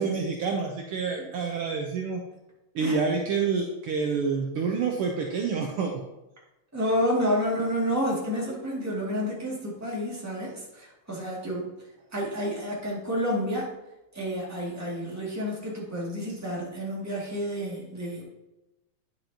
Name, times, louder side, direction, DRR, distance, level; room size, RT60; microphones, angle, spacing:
voice 1, 0.0-2.2 2.7-6.0, right 5 dB, 80° right, 0 dB, 1.2 m, -28 dB
voice 2, 6.7-11.7 12.1-13.7 14.1-18.2, equal, 5° right, -5 dB, 1.8 m, -30 dB
9.6 x 6.5 x 2.9 m, 0.96 s
omnidirectional pair, 3.4 m